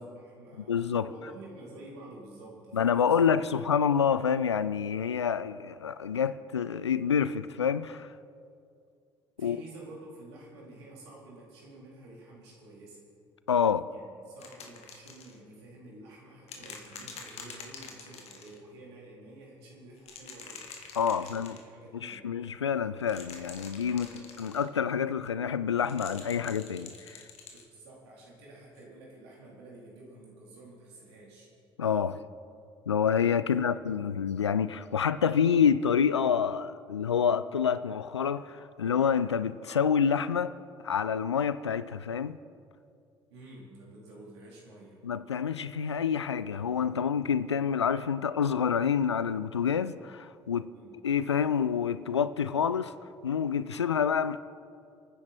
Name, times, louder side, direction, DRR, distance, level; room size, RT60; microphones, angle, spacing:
voice 1, 0.0-3.6 9.4-13.0 13.9-20.6 21.1-22.3 23.9-24.2 27.7-31.5 33.5-33.8 43.3-45.0 50.7-51.0, right 2 dB, 70° right, 4.0 m, -50 dB
voice 2, 0.7-1.1 2.7-8.1 9.4-9.6 13.5-13.9 21.0-21.6 22.0-24.1 24.4-27.2 31.8-32.2 32.9-40.6 40.8-42.4 45.0-50.7 51.0-52.9 53.2-54.4, left 7 dB, 85° left, 0.4 m, -27 dB
sound 1, 14.4-15.4 16.5-18.6 20.0-21.6 23.0-24.7 25.8-27.7 28.8-28.9, left 5 dB, 50° left, 2.0 m, -46 dB
28.5 x 9.9 x 4.4 m
figure-of-eight pair, 55°, 14 cm